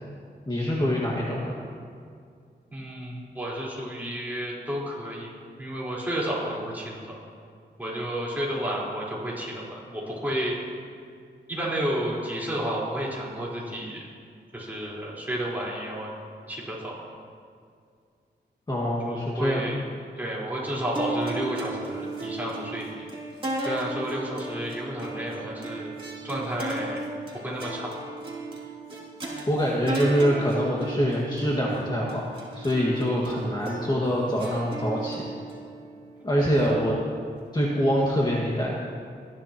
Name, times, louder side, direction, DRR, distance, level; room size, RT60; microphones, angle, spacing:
voice 1, 0.5-1.6 18.7-19.8 29.5-35.2 36.2-37.0 37.5-38.7, equal, 25° left, -5 dB, 1.9 m, -25 dB
voice 2, 2.7-5.3 5.6-7.2 7.8-10.6 11.5-14.0 14.5-16.1 16.5-16.9 19.1-19.8 20.2-23.0 23.6-26.0 26.2-27.1 27.3-27.9, right 1 dB, 10° right, -6 dB, 4.3 m, -31 dB
sound 1, 20.9-37.4, right 2 dB, 30° right, 3.3 m, -35 dB
21.0 x 14.0 x 3.0 m, 2.2 s
wide cardioid pair, 115°, 19 cm